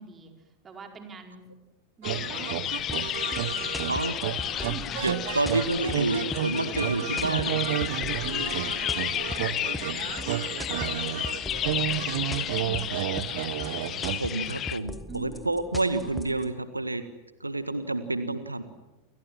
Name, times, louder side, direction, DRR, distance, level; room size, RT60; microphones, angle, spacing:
voice 1, 0.0-1.5 2.0-3.0 4.6-4.9 8.2-13.1 15.1-15.5, right 3 dB, 20° right, 4 dB, 5.0 m, -46 dB
sound 1, 2.0-14.8, left 11 dB, 30° left, 1.3 m, -32 dB
sound 2, 2.0-14.2, right 14 dB, 55° right, 1.0 m, -32 dB
sound 3, 2.9-16.5, left 2 dB, 5° left, 1.6 m, -40 dB
voice 2, 3.8-4.2 5.0-7.9 8.3-8.5 14.2-17.0 17.4-18.6, right 2 dB, 85° right, 11 dB, 1.7 m, -29 dB
29.5 x 26.0 x 7.6 m, 1.0 s
figure-of-eight pair, 90°, 0 cm